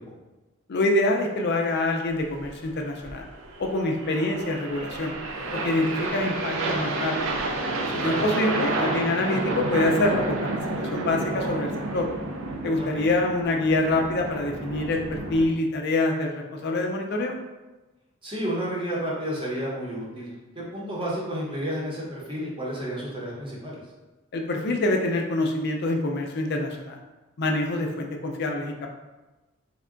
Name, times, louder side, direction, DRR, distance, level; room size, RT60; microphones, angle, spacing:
voice 1, 0.7-3.3 3.6-5.2 5.5-7.3 7.9-12.1 12.6-17.4 24.3-27.0 27.4-28.9, left 2 dB, 50° left, 3 dB, 0.5 m, -26 dB
sound 1, 2.1-15.4, right 2 dB, 65° right, 0.4 m, -30 dB
voice 2, 12.8-13.1 18.2-23.8, equal, 25° right, -5 dB, 0.8 m, -31 dB
3.5 x 2.2 x 3.7 m, 1.1 s
head